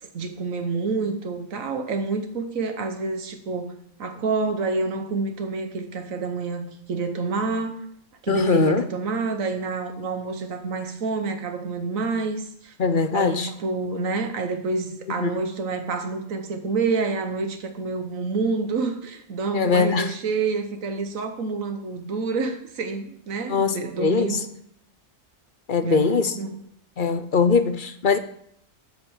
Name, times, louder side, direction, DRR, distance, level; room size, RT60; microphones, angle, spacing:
voice 1, 0.0-7.9 8.2-12.7 13.1-24.5 25.8-26.6, right 4 dB, 85° right, 1.5 m, -28 dB
voice 2, 8.3-8.8 12.8-13.5 15.2-15.4 19.5-20.1 23.5-24.4 25.7-26.4 27.0-28.2, left 5 dB, 45° left, 0.8 m, -21 dB
8.8 x 8.3 x 7.2 m
omnidirectional pair, 1.4 m